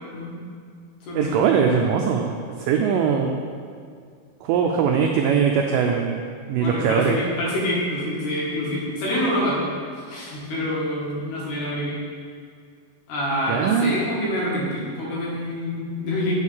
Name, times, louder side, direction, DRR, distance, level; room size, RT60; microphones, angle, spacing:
voice 1, 0.1-0.5 1.1-1.4 2.9-3.0 6.6-9.6 10.1-12.0 13.1-16.3, left 1 dB, 85° left, -6 dB, 4.2 m, -26 dB
voice 2, 1.2-2.3 2.6-3.3 4.4-6.2 6.5-7.2 13.5-14.0, right 6 dB, 85° right, 2 dB, 1.9 m, -21 dB
7.4 x 6.3 x 7.2 m, 2.1 s
omnidirectional pair, 4.5 m